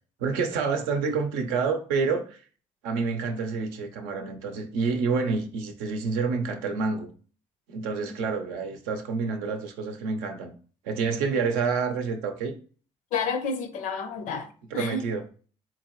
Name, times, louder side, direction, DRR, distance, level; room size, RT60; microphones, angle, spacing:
voice 1, 0.2-2.4 2.8-7.1 7.7-10.5 10.8-12.5 14.7-15.2, right 5 dB, 90° right, 0.6 m, -28 dB
voice 2, 13.1-15.1, left 4 dB, 75° left, 0.6 m, -31 dB
3.9 x 2.7 x 3.0 m
supercardioid pair, 60°, 13 cm